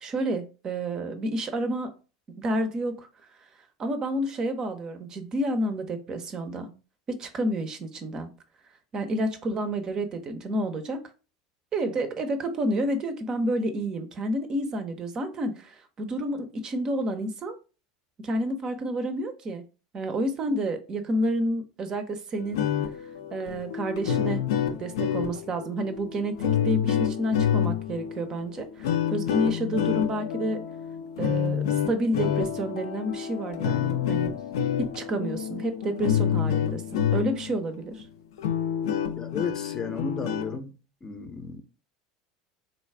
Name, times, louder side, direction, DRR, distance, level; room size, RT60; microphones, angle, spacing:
voice 1, 0.0-2.0 2.4-3.1 3.8-6.7 7.1-8.3 8.9-11.1 11.7-17.6 18.2-19.6 19.9-22.7 23.3-24.4 24.8-30.6 31.2-34.3 34.8-38.1, right 1 dB, 35° right, 0.6 m, -29 dB
sound 1, 22.4-37.6 38.0-38.1 38.4-40.6, left 9 dB, 65° left, 0.4 m, -28 dB
voice 2, 39.2-40.7 41.0-41.6, left 4 dB, 25° left, 0.6 m, -33 dB
3.9 x 2.3 x 3.3 m
figure-of-eight pair, 75°, 2 cm